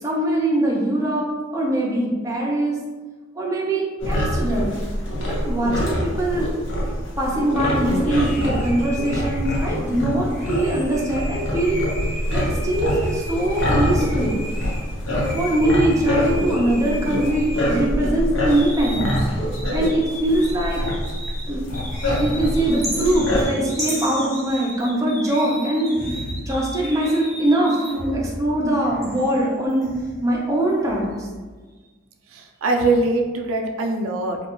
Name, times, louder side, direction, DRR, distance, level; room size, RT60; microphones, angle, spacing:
voice 1, 0.0-2.8 3.3-4.8 5.3-6.5 7.2-11.8 12.3-14.4 15.3-19.2 19.7-20.8 21.5-21.7 22.2-25.9 26.5-29.9 30.2-31.3, right 1 dB, 15° right, -4 dB, 0.4 m, -22 dB
sound 1, 4.0-23.5, equal, 75° left, 0.6 m, -25 dB
sound 2, 8.0-14.8 15.2-18.1 18.4-27.9, equal, 40° left, 0.7 m, -38 dB
sound 3, 22.8-25.2 25.8-27.4 27.8-30.3 30.7-31.4, equal, ahead, 0.8 m, -33 dB
voice 2, 32.3-34.4, right 2 dB, 85° right, 2 dB, 0.3 m, -22 dB
2.4 x 2.2 x 2.9 m, 1.4 s
head